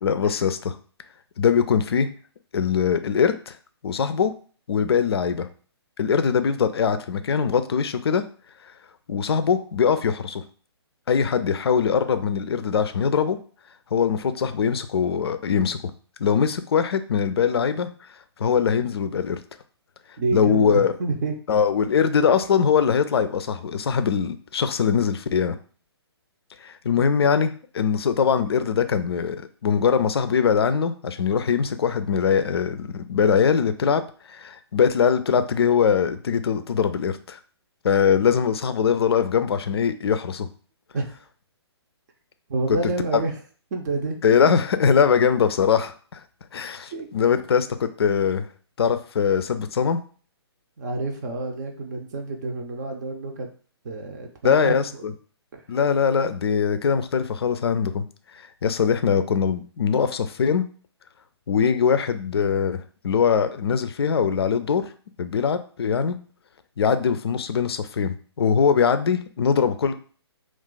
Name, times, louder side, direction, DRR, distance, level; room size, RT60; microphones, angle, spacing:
voice 1, 0.0-0.8 1.4-2.1 2.5-3.6 3.8-4.3 4.7-5.5 6.0-8.2 9.1-10.4 11.1-13.4 13.9-15.8 16.2-17.9 18.4-19.4 20.3-20.9 21.5-25.5 26.6-34.0 34.3-37.4 37.8-40.5 42.7-42.8 43.1-43.2 44.2-46.2 46.5-48.5 48.8-50.0 54.4-55.1 55.7-58.0 58.3-60.6 61.5-64.9 65.2-66.2 66.8-69.9, left 7 dB, 65° left, 10 dB, 0.4 m, -22 dB
voice 2, 20.2-21.3 40.9-41.2 42.5-43.3 43.7-44.4 46.9-47.1 50.8-53.5 53.8-54.7 55.0-55.1, right 3 dB, 40° right, 3 dB, 0.6 m, -28 dB
2.4 x 2.4 x 3.8 m, 0.42 s
figure-of-eight pair, 135°, 14 cm